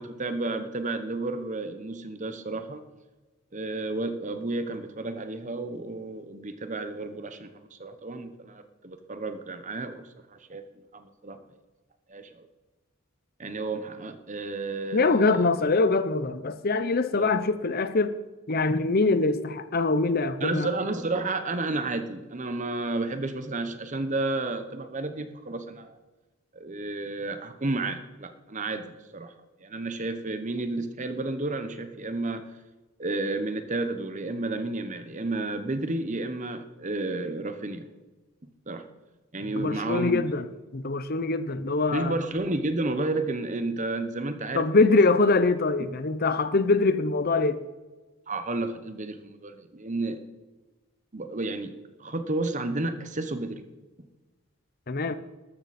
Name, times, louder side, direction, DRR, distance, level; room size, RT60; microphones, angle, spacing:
voice 1, 0.0-2.8 3.5-10.0 10.3-10.6 10.9-11.4 12.1-12.4 13.4-15.5 17.1-17.3 20.4-26.0 26.5-29.3 29.6-32.4 33.0-37.9 38.7-38.8 39.3-40.2 41.9-44.8 48.3-50.2 51.1-51.7 52.0-53.6, right 2 dB, 35° right, 9 dB, 1.0 m, -31 dB
voice 2, 14.9-18.1 18.5-20.7 39.6-40.5 40.7-42.2 44.5-47.6 54.9-55.1, left 3 dB, 45° left, 12 dB, 0.7 m, -23 dB
14.0 x 12.5 x 4.2 m, 1.2 s
head